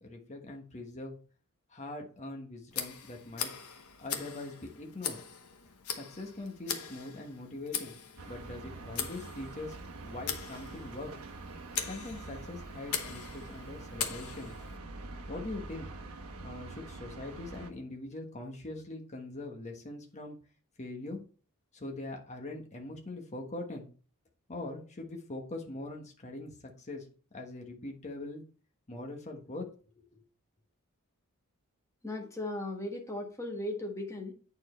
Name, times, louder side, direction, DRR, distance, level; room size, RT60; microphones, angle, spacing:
voice 1, 0.0-1.2 1.7-3.5 4.0-5.2 5.9-7.9 8.3-11.2 11.8-14.6 15.3-15.9 16.4-20.4 20.8-21.2 21.7-23.9 24.5-27.0 27.3-28.4 28.9-29.7 30.0-30.2, left 2 dB, 30° left, 2 dB, 1.3 m, -42 dB
Tick, 2.7-14.8, left 8 dB, 75° left, 1.0 m, -41 dB
sound 1, 8.2-17.7, right 3 dB, 75° right, 1.1 m, -45 dB
voice 2, 32.0-34.3, left 1 dB, 15° left, 0 dB, 1.5 m, -37 dB
9.0 x 4.5 x 4.3 m, 0.40 s
head